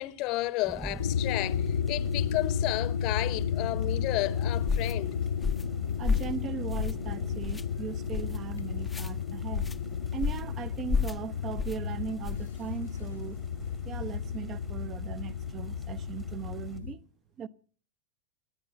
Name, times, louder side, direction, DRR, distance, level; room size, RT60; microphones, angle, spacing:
voice 1, 0.0-5.2, left 19 dB, 40° left, 0.9 m, -32 dB
sound 1, 0.6-16.8, right 2 dB, 10° right, 1.3 m, -47 dB
sound 2, 1.0-16.9, left 7 dB, 70° left, 0.9 m, -33 dB
sound 3, 4.7-4.9 5.4-5.7 6.0-6.4 6.7-7.1 7.4-7.6 8.1-8.4 8.8-9.1 9.5-9.8 10.2-10.5 10.9-11.2 11.6-11.8 12.2-12.5, left 5 dB, 10° left, 0.7 m, -31 dB
voice 2, 6.0-9.7 10.1-13.4 13.8-17.0 17.4-17.5, right 7 dB, 30° right, 0.8 m, -38 dB
26.5 x 9.5 x 5.6 m
figure-of-eight pair, 90°, 0 cm